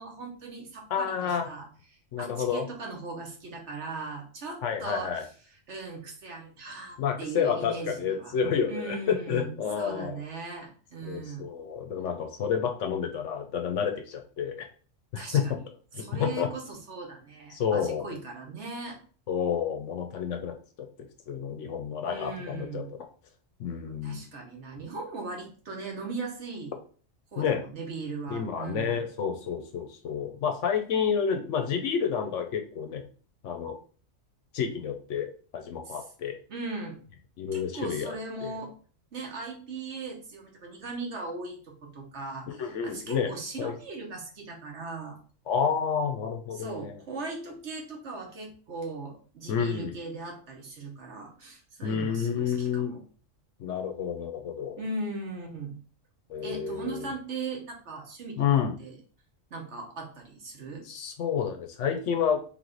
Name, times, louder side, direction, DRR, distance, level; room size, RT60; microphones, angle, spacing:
voice 1, 0.0-1.6 2.2-5.1 5.7-8.3 8.7-11.4 15.1-15.5 16.0-19.0 22.1-22.9 24.0-26.8 27.3-29.0 35.9-36.0 36.5-37.0 37.5-38.7 39.1-45.2 46.5-53.0 54.8-55.8 56.4-59.0 59.5-60.8, right 3 dB, 60° right, 0 dB, 1.3 m, -38 dB
voice 2, 0.9-1.5 2.1-2.7 4.6-5.2 7.0-10.2 11.0-14.7 15.1-15.6 15.9-16.5 17.5-18.0 19.3-20.5 21.3-23.0 23.6-24.2 27.4-27.6 28.3-33.0 33.4-33.8 34.5-36.4 37.4-38.1 38.4-38.5 42.5-43.3 43.6-43.7 45.5-47.0 49.5-49.9 51.8-52.9 53.6-54.8 56.3-57.1 58.4-58.7 60.9-62.4, left 7 dB, 70° left, 5 dB, 0.9 m, -29 dB
3.5 x 3.2 x 3.8 m, 0.41 s
omnidirectional pair, 1.4 m